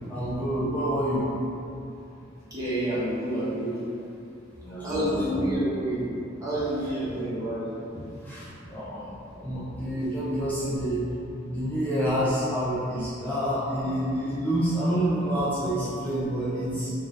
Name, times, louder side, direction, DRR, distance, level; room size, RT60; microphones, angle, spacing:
voice 1, 0.1-1.3 4.6-5.4 8.2-11.1 11.5-16.9, equal, 10° left, -10 dB, 0.5 m, -28 dB
voice 2, 2.5-3.7 4.8-6.0 6.4-8.0, right 1 dB, 20° right, -11 dB, 1.0 m, -28 dB
3.8 x 2.6 x 3.2 m, 2.7 s
head